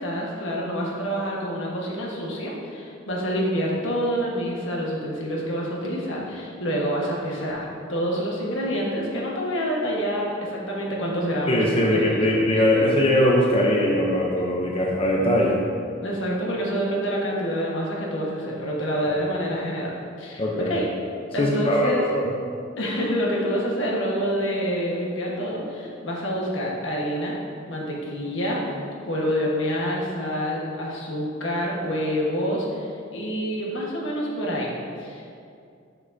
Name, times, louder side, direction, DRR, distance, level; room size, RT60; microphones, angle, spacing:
voice 1, 0.0-11.8 12.1-12.3 16.0-20.8 21.3-22.0 22.8-27.4 27.7-28.6 29.1-34.7 35.0-35.3, equal, 70° left, -3 dB, 1.3 m, -27 dB
voice 2, 11.5-15.6 20.4-20.7 21.4-22.3, left 1 dB, 30° left, -2 dB, 0.6 m, -21 dB
7.2 x 6.5 x 2.6 m, 2.4 s
head